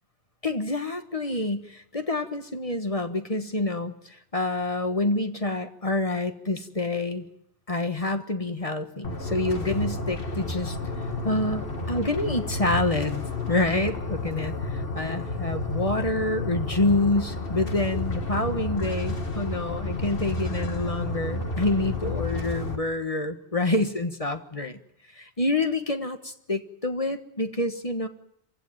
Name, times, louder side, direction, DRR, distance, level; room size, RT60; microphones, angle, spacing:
voice 1, 0.4-7.3 7.7-10.8 11.2-13.2 13.5-24.8 25.1-28.1, left 2 dB, 35° left, 7 dB, 1.4 m, -27 dB
sound 1, 9.0-22.8, left 2 dB, 60° left, 2.0 m, -31 dB
26.0 x 16.5 x 9.2 m, 0.75 s
omnidirectional pair, 1.1 m